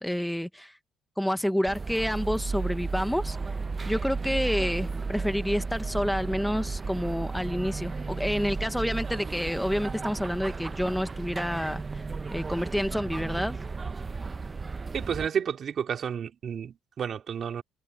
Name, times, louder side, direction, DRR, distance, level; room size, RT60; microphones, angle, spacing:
voice 1, 0.0-0.8 1.2-3.4 3.9-12.0 12.3-13.6, equal, ahead, 0.9 m, -29 dB
sound 1, 1.7-15.3, right 4 dB, 25° right, 0.8 m, -34 dB
voice 2, 14.9-17.6, right 7 dB, 45° right, 2.8 m, -31 dB
cardioid pair, 115°, 0 cm